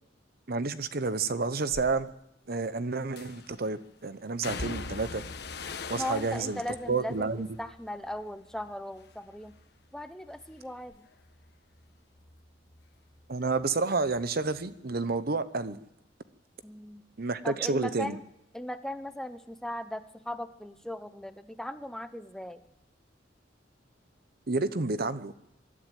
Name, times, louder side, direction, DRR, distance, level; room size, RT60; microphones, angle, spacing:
voice 1, 0.5-2.1 2.5-5.2 5.9-6.6 6.9-7.5 13.3-15.8 17.2-18.2 24.5-25.3, right 3 dB, 55° right, 13 dB, 0.9 m, -30 dB
sound 1, 1.7-1.9 3.2-3.6 4.4-8.7 9.0-9.6 10.0-13.3 13.5-14.7 14.9-15.1, left 4 dB, 65° left, 1.4 m, -43 dB
voice 2, 6.0-7.3 7.6-9.6 9.9-11.1 16.6-17.0 17.4-18.2 18.5-22.6, left 1 dB, 5° left, 10 dB, 0.9 m, -38 dB
23.5 x 12.5 x 9.4 m, 0.84 s
head